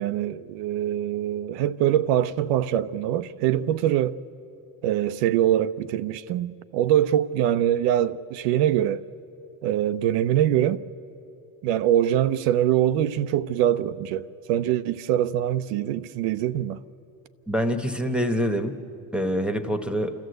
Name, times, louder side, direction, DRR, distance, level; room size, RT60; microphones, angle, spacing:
voice 1, 0.0-4.2 4.8-9.0 9.6-10.9 11.6-16.8, right 11 dB, 75° right, 0.8 m, -23 dB
voice 2, 17.5-18.8 19.1-20.1, equal, ahead, 1.2 m, -25 dB
29.0 x 13.5 x 8.0 m
supercardioid pair, 105°, 43 cm